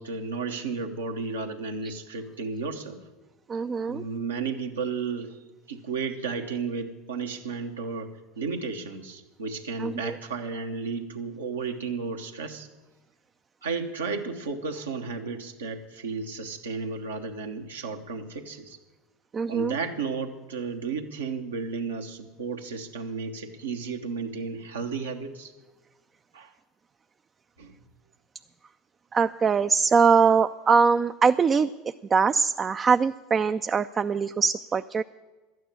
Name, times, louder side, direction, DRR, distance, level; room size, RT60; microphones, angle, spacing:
voice 1, 0.0-3.0 3.9-5.4 5.7-12.7 13.6-18.8 19.5-25.5 26.3-26.5 27.6-27.8, right 4 dB, 85° right, 3 dB, 1.3 m, -33 dB
voice 2, 3.5-4.0 9.8-10.1 19.3-19.8 29.1-35.0, right 5 dB, 30° right, 9 dB, 0.4 m, -22 dB
12.5 x 9.2 x 9.0 m, 1.2 s
hypercardioid pair, 75°, 0 cm